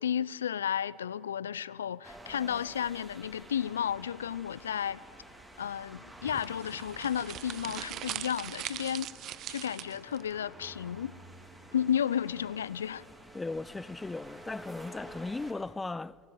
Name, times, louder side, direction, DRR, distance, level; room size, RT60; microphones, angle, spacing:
voice 1, 0.0-5.0 5.6-9.1 9.5-11.2 11.7-13.0, left 9 dB, 80° left, 0.5 m, -33 dB
sound 1, 2.0-15.5, right 1 dB, 10° right, 4.5 m, -50 dB
sound 2, 6.2-10.2, right 12 dB, 45° right, 0.8 m, -41 dB
voice 2, 13.3-16.2, left 3 dB, 15° left, 0.6 m, -37 dB
28.5 x 18.0 x 9.6 m
hypercardioid pair, 75°, 0 cm